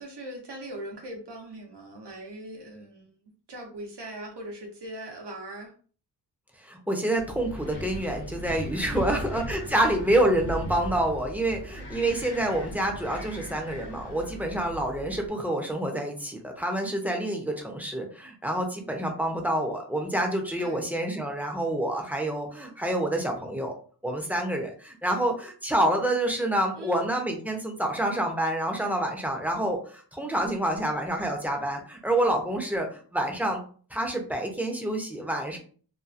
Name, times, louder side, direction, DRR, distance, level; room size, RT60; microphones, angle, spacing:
voice 1, 0.0-3.1 3.5-5.7 8.9-9.4 20.6-20.9 26.7-27.0, right 1 dB, 75° right, 1 dB, 1.0 m, -40 dB
voice 2, 6.6-23.7 24.0-33.6 33.9-35.6, right 1 dB, 5° right, 1 dB, 0.6 m, -27 dB
Wind, 7.2-15.3, right 1 dB, 70° left, 0.7 m, -38 dB
2.7 x 2.5 x 2.4 m, 0.42 s
wide cardioid pair, 85°, 41 cm